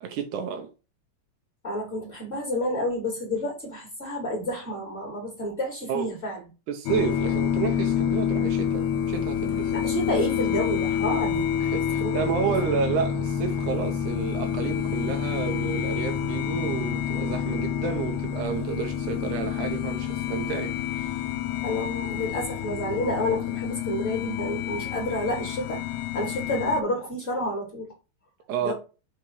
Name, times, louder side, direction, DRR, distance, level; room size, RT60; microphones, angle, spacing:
voice 1, 0.0-0.7 5.9-6.1 6.7-9.7 11.6-21.1 28.5-28.7, right 7 dB, 80° right, 2.1 m, -30 dB
voice 2, 1.6-6.4 9.7-11.5 12.0-12.5 21.6-25.8 26.1-27.9 28.6-28.7, left 1 dB, 20° left, 2.6 m, -29 dB
sound 1, 6.9-26.8, left 9 dB, 80° left, 1.7 m, -28 dB
5.6 x 3.8 x 4.6 m
omnidirectional pair, 3.6 m